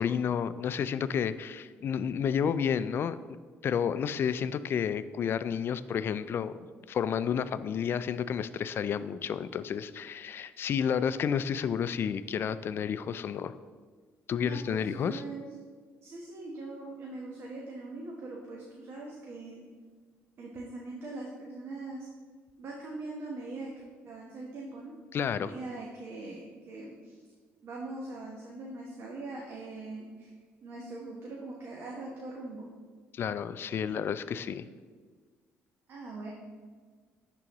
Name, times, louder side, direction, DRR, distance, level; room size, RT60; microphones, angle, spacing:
voice 1, 0.0-3.2 3.6-13.5 14.3-15.2 25.1-25.5 33.1-34.7, left 7 dB, 50° left, 14 dB, 0.3 m, -31 dB
voice 2, 14.4-15.5 16.0-19.6 20.4-22.1 22.6-23.7 24.0-24.9 25.4-27.2 27.6-30.3 30.6-32.7 35.9-36.3, right 2 dB, 55° right, -2 dB, 1.0 m, -41 dB
11.0 x 3.8 x 3.0 m, 1.5 s
cardioid pair, 85°, 5 cm